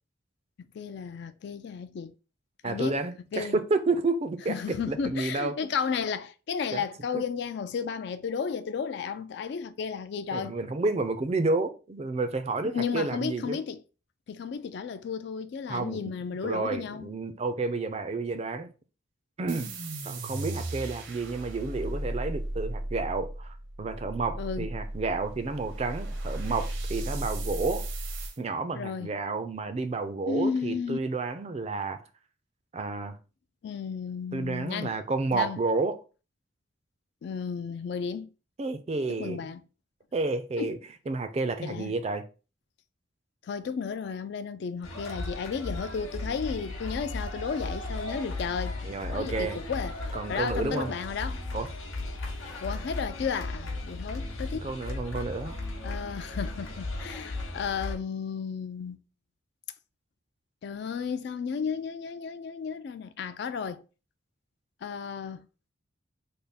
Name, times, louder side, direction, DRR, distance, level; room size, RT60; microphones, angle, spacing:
voice 1, 0.6-2.1 2.6-3.0 3.3-3.6 4.5-10.6 12.6-13.8 14.3-17.1 24.4-24.7 28.7-29.1 30.3-31.0 33.6-35.0 35.3-35.6 37.2-38.3 39.1-39.6 40.6-40.8 41.6-42.0 43.4-50.0 50.3-51.4 52.6-54.7 55.8-59.0 60.6-63.8 64.8-65.4, left 6 dB, 55° left, 0.3 m, -33 dB
voice 2, 2.6-5.5 6.7-6.8 7.1-7.2 10.3-13.6 15.7-16.0 16.4-18.7 19.4-19.7 20.0-27.8 28.4-32.0 32.7-33.2 34.3-36.0 38.6-39.4 40.1-40.8 41.1-42.2 48.8-49.6 50.1-50.9 51.5-51.7 54.6-55.6, right 3 dB, 30° right, 0.4 m, -30 dB
sound 1, 19.5-28.4, right 1 dB, 70° right, 0.7 m, -35 dB
sound 2, 44.8-58.0, left 2 dB, 90° left, 0.9 m, -36 dB
3.4 x 2.1 x 4.0 m
head